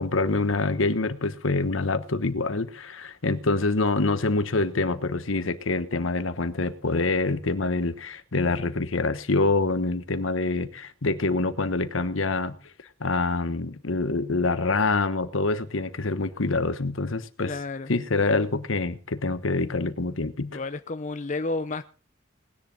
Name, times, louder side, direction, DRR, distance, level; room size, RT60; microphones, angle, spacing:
voice 1, 0.0-12.5 13.0-17.5 17.9-20.6, left 3 dB, 75° left, 1.2 m, -26 dB
voice 2, 17.5-17.9 18.3-18.4 20.5-21.8, left 3 dB, 35° left, 0.6 m, -31 dB
19.5 x 10.5 x 3.8 m
head